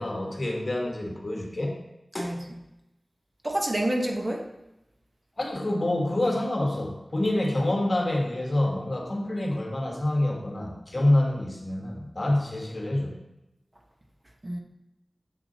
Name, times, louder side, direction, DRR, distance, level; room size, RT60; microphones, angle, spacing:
voice 1, 0.0-1.8 2.1-2.3 5.4-13.1, left 1 dB, 50° left, 0 dB, 1.3 m, -27 dB
voice 2, 2.2-2.6 3.4-4.5 14.4-14.6, right 1 dB, 35° right, 2 dB, 0.9 m, -28 dB
6.9 x 6.0 x 2.8 m, 0.91 s
wide cardioid pair, 65°, 0 cm